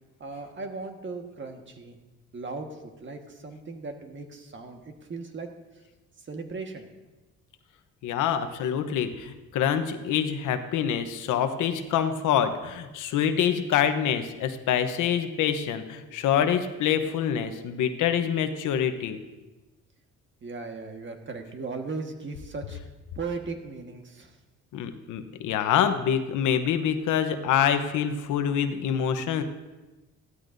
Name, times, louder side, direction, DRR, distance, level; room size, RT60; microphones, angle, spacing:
voice 1, 0.2-2.0 2.3-5.5 6.2-6.9 20.4-22.8 23.1-24.4, right 4 dB, 40° right, 4 dB, 1.5 m, -37 dB
voice 2, 8.0-19.2 24.7-29.4, left 8 dB, 85° left, 8 dB, 1.0 m, -26 dB
15.5 x 13.0 x 2.7 m, 1.1 s
cardioid pair, 90°, 30 cm